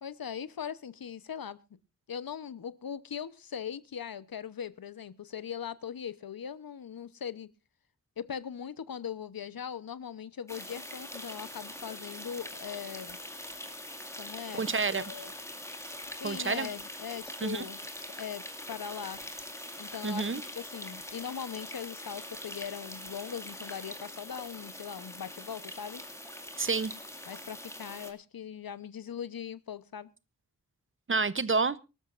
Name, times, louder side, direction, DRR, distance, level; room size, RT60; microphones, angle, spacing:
voice 1, 0.0-1.6 2.1-7.5 8.2-13.2 14.2-15.3 16.1-17.8 18.2-19.2 19.8-26.0 27.3-30.1, left 8 dB, 80° left, 16 dB, 0.9 m, -40 dB
sound 1, 10.5-28.1, left 1 dB, 10° left, 2.2 m, -43 dB
voice 2, 14.5-15.0 16.2-16.7 17.4-17.6 20.0-20.4 26.6-26.9 31.1-31.8, right 4 dB, 35° right, 17 dB, 0.7 m, -29 dB
24.5 x 12.5 x 2.5 m, 0.29 s
wide cardioid pair, 110°, 35 cm